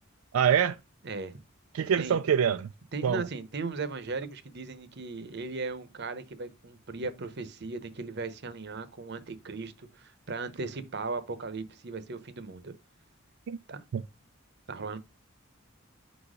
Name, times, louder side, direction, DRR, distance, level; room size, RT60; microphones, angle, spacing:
voice 1, 0.3-0.8 1.7-2.7 3.0-3.2 13.5-13.6 13.9-14.0, right 8 dB, 85° right, 0.4 m, -25 dB
voice 2, 1.0-1.4 2.0-2.2 2.9-12.7 13.7-13.8 14.7-15.0, right 3 dB, 55° right, 0.8 m, -37 dB
5.5 x 4.2 x 4.9 m
head